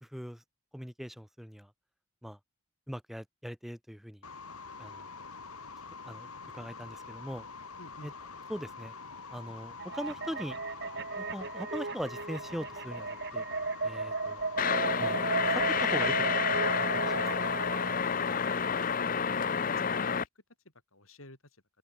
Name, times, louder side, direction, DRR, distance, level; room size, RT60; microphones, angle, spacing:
voice 1, 0.0-0.4 0.7-1.7 2.2-2.4 2.9-4.2 4.8-5.1 5.9-7.4 8.0-8.1 8.5-8.9 9.3-10.6 11.2-13.5 13.8-14.4 15.0-15.2 15.5-16.3 16.7-17.3, equal, ahead, 3.3 m, -41 dB
sound 1, 4.2-19.0, left 4 dB, 90° left, 6.4 m, -46 dB
voice 2, 7.8-8.1 18.6-20.2 20.9-21.4, left 1 dB, 70° left, 7.6 m, -52 dB
sound 2, 9.8-18.0, right 3 dB, 50° right, 1.5 m, -34 dB
sound 3, 14.6-20.2, left 6 dB, 40° left, 0.7 m, -29 dB
open air
head